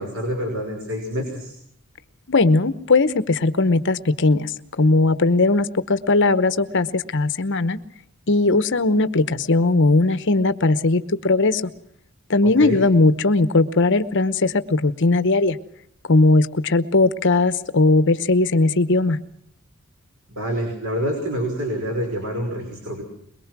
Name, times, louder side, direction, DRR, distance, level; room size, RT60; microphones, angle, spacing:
voice 1, 0.0-1.5 12.4-12.8 20.3-23.0, equal, 65° right, 2 dB, 5.4 m, -27 dB
voice 2, 2.3-7.8 8.3-11.6 12.3-15.6 16.1-19.2, left 3 dB, 55° left, 12 dB, 1.0 m, -18 dB
22.5 x 22.5 x 6.1 m, 0.71 s
head